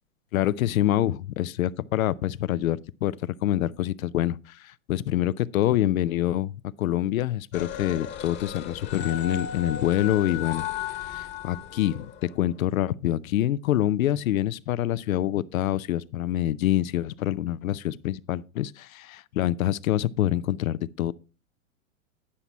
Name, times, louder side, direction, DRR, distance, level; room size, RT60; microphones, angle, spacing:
voice 1, 0.3-6.5 6.8-21.1, left 13 dB, 75° left, 0.6 m, -26 dB
sound 1, 7.5-12.4, left 9 dB, 25° left, 1.2 m, -35 dB
9.9 x 5.9 x 4.2 m
hypercardioid pair, 115°, 42 cm